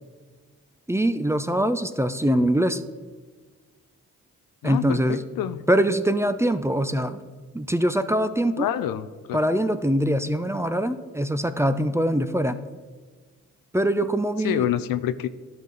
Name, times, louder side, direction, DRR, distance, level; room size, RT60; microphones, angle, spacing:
voice 1, 0.9-2.8 4.6-5.2 5.7-7.2 7.5-8.7 9.3-12.6 13.7-14.7, right 1 dB, 10° right, 11 dB, 0.5 m, -23 dB
voice 2, 4.6-5.6 8.6-9.4 14.4-15.3, left 11 dB, 80° left, 13 dB, 0.5 m, -27 dB
12.0 x 4.8 x 4.0 m, 1.4 s
supercardioid pair, 45°, 34 cm